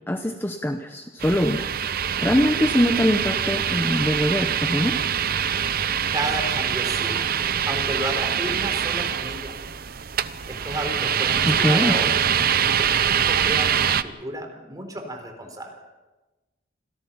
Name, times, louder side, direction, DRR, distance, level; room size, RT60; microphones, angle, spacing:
voice 1, 0.1-1.7 2.2-5.0 11.5-12.0, equal, 10° left, 6 dB, 0.9 m, -23 dB
sound 1, 1.2-14.0, right 8 dB, 50° right, 0.8 m, -24 dB
voice 2, 6.1-7.3 7.7-9.6 10.5-12.4 12.6-15.7, right 1 dB, 20° right, 4 dB, 3.9 m, -32 dB
27.0 x 17.0 x 5.8 m, 1.1 s
head